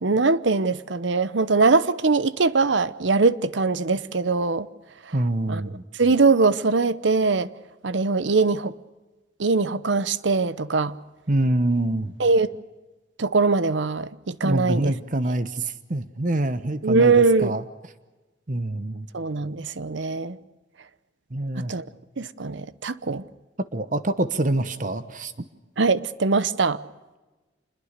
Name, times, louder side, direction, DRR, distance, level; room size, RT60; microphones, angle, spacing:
voice 1, 0.0-4.7 5.5-5.6 6.0-7.5 7.8-8.7 9.4-11.0 12.2-12.5 13.2-14.9 16.8-17.6 19.1-20.4 21.6-21.9 22.2-23.2 25.8-26.8, right 4 dB, 75° right, 0.8 m, -21 dB
voice 2, 5.1-5.8 11.3-12.1 14.4-17.6 18.5-19.1 21.3-21.7 23.7-25.3, right 1 dB, 45° right, 1.1 m, -25 dB
26.5 x 21.0 x 6.7 m
head